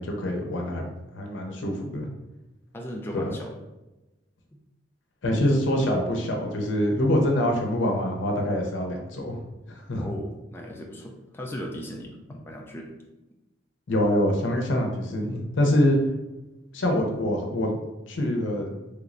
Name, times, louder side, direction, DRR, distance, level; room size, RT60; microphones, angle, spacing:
voice 1, 0.0-2.1 3.1-3.2 5.2-9.4 9.7-10.1 13.9-16.0 16.7-17.8 18.1-18.7, left 1 dB, 75° left, 1 dB, 0.6 m, -25 dB
voice 2, 2.7-3.6 10.0-12.9, equal, 10° left, 0 dB, 0.3 m, -37 dB
3.3 x 3.1 x 2.5 m, 1.0 s
head